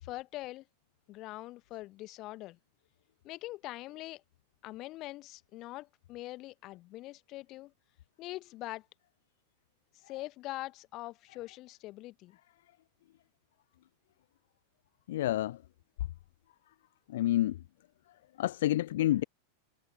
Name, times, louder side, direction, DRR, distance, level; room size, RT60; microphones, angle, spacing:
voice 1, 0.0-0.7 1.1-2.6 3.2-4.2 4.6-7.7 8.2-8.9 9.9-12.4, left 18 dB, 40° left, 1.1 m, -43 dB
voice 2, 15.1-15.6 17.1-17.6 18.4-19.2, left 14 dB, 55° left, 0.4 m, -28 dB
figure-of-eight pair, 90°, 0 cm